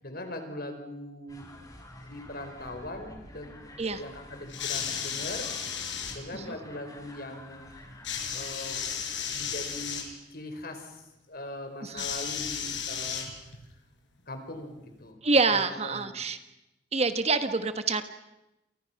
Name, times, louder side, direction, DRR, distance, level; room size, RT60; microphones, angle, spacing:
voice 1, 0.0-1.5 2.0-8.9 9.3-10.0 10.3-13.3 14.3-15.2 15.5-16.1, left 1 dB, 55° left, 6 dB, 4.9 m, -41 dB
sound 1, 1.3-8.6, left 1 dB, 20° left, 4.2 m, -49 dB
sound 2, 4.5-6.2 8.0-10.1 12.0-13.7 14.6-14.7, left 7 dB, 80° left, 5.1 m, -34 dB
voice 2, 15.2-16.4 16.9-18.0, right 3 dB, 35° right, 9 dB, 1.5 m, -26 dB
29.0 x 28.5 x 5.9 m, 0.94 s
head